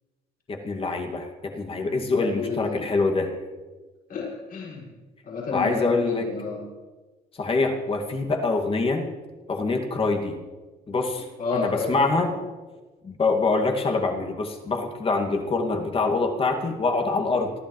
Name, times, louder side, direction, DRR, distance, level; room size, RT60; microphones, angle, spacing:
voice 1, 0.5-3.3 5.5-6.2 7.4-9.1 9.5-10.4 10.9-12.3 13.0-17.5, left 3 dB, 35° left, 2 dB, 2.3 m, -25 dB
voice 2, 2.2-2.9 4.1-4.9 5.3-6.6 11.4-12.4, left 5 dB, 60° left, -5 dB, 6.1 m, -30 dB
28.0 x 12.0 x 3.3 m, 1.3 s
cardioid pair, 110°, 17 cm